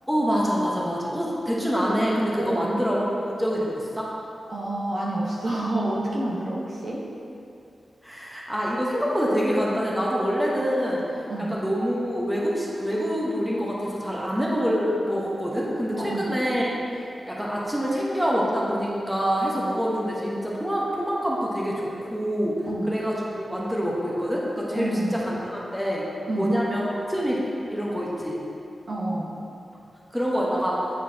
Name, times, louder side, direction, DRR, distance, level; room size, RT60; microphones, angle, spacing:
voice 1, 0.1-4.1 8.0-11.0 11.5-16.8 17.3-22.6 22.8-26.0 26.4-27.4 27.7-28.4 30.1-30.8, equal, 5° right, -5 dB, 1.0 m, -26 dB
voice 2, 2.4-2.7 4.5-7.0 11.3-11.6 16.0-16.3 22.7-22.9 24.7-25.2 26.3-26.5 28.9-29.3, right 1 dB, 55° right, -5 dB, 1.1 m, -28 dB
9.3 x 4.5 x 2.8 m, 2.7 s
wide cardioid pair, 100°, 0 cm